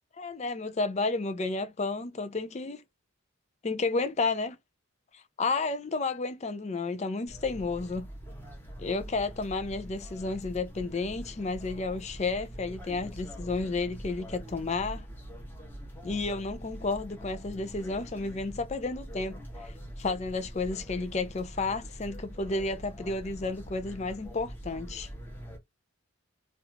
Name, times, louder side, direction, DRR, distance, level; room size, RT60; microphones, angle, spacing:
voice 1, 0.2-2.8 3.6-4.6 5.1-8.1 8.8-15.1 16.0-19.7 20.0-25.1, left 3 dB, 30° left, 0.4 m, -32 dB
sound 1, 7.3-25.6, equal, 10° left, 0.9 m, -44 dB
3.2 x 2.4 x 2.8 m
head